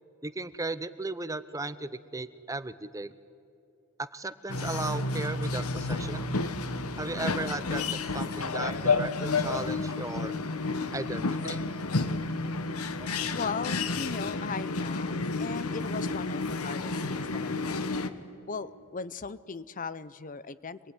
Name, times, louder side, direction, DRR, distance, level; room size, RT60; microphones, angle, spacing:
voice 1, 0.2-3.1 4.0-6.3 7.0-7.8 8.1-10.3 10.9-11.6 13.0-13.1, right 2 dB, 15° right, 14 dB, 0.7 m, -36 dB
sound 1, 4.5-18.1, left 3 dB, 75° left, 1.3 m, -31 dB
voice 2, 13.3-17.8 18.5-20.8, left 5 dB, 35° left, 16 dB, 0.6 m, -38 dB
26.0 x 20.0 x 9.9 m, 2.6 s
head